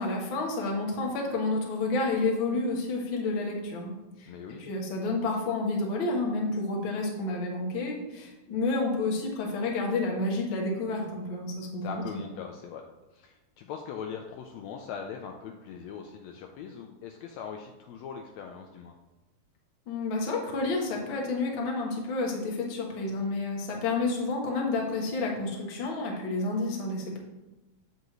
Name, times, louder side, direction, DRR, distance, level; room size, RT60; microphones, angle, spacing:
voice 1, 0.0-4.3 4.6-12.2 19.9-27.2, left 3 dB, 55° left, 0 dB, 1.5 m, -30 dB
voice 2, 4.3-4.6 11.8-12.8 13.1-18.9, left 7 dB, 85° left, 3 dB, 1.5 m, -41 dB
7.8 x 6.6 x 3.1 m, 1.0 s
omnidirectional pair, 3.7 m